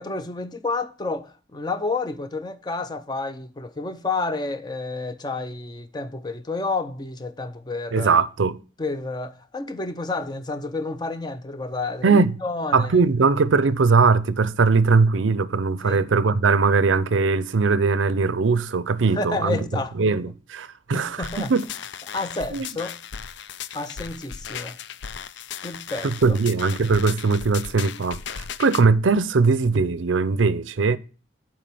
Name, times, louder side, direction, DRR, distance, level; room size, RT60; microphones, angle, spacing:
voice 1, 0.0-8.2 8.8-13.0 15.8-16.0 19.1-19.9 20.9-21.5 22.1-23.0 23.7-24.8 25.6-26.4, left 3 dB, 20° left, 0.6 m, -30 dB
voice 2, 7.9-8.6 12.0-12.4 12.7-19.6 20.0-21.7 22.5-22.7 26.0-31.0, right 4 dB, 85° right, 0.6 m, -20 dB
sound 1, 21.2-28.8, left 8 dB, 70° left, 0.5 m, -36 dB
7.5 x 4.7 x 6.8 m
head